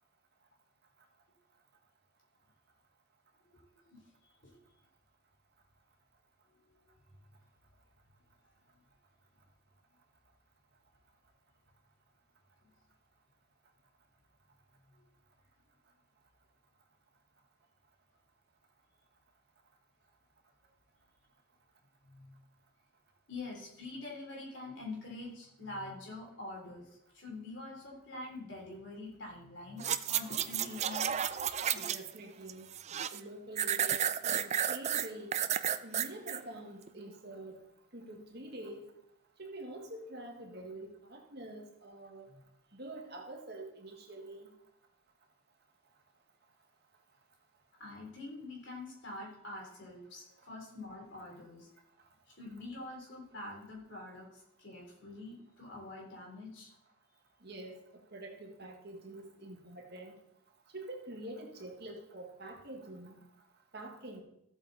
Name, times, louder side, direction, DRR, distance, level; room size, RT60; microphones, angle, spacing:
voice 1, 3.4-4.1 4.4-4.5 6.5-6.9 12.6-12.7 15.0-15.1 22.0-22.4 23.3-31.8 42.3-42.4 47.8-51.7 52.3-56.7, left 2 dB, 55° left, -1 dB, 3.7 m, -46 dB
sound 1, 29.8-32.2 32.5-33.2 33.6-36.4 36.9-37.0, right 9 dB, 30° right, 0.4 m, -32 dB
voice 2, 31.7-32.7 33.1-35.4 35.8-37.6 37.9-38.9 39.4-42.3 42.7-44.5 57.4-57.8 58.1-60.2 60.7-63.2 63.7-64.2, right 1 dB, 50° right, 2 dB, 1.8 m, -46 dB
14.0 x 8.0 x 4.2 m, 0.78 s
head